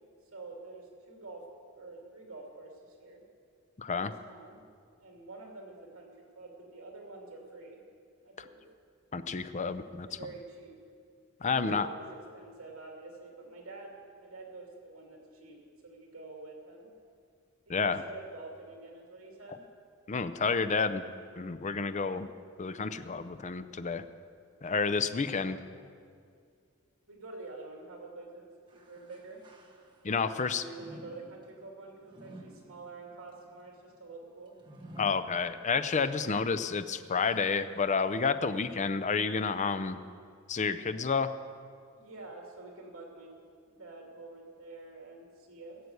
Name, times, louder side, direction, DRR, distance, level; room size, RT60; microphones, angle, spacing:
voice 1, 0.3-1.5 1.7-3.2 3.9-4.6 5.0-6.1 6.4-7.8 8.2-8.6 10.0-10.8 11.4-16.9 17.7-19.6 25.3-25.6 27.1-29.4 30.1-34.5 36.1-36.4 41.9-43.4 43.7-45.8, right 2 dB, 70° right, 0 dB, 2.6 m, -47 dB
voice 2, 3.8-4.1 9.1-10.1 11.4-11.9 17.7-18.0 20.1-21.1 21.4-22.3 22.6-24.0 24.6-25.6 30.0-30.6 35.0-40.0 40.5-41.3, left 5 dB, 35° left, 11 dB, 0.5 m, -30 dB
sound 1, 28.7-30.3 30.7-36.0 36.5-36.6 37.4-37.5, right 1 dB, 20° right, 1.3 m, -52 dB
17.0 x 6.7 x 8.0 m, 2.2 s
head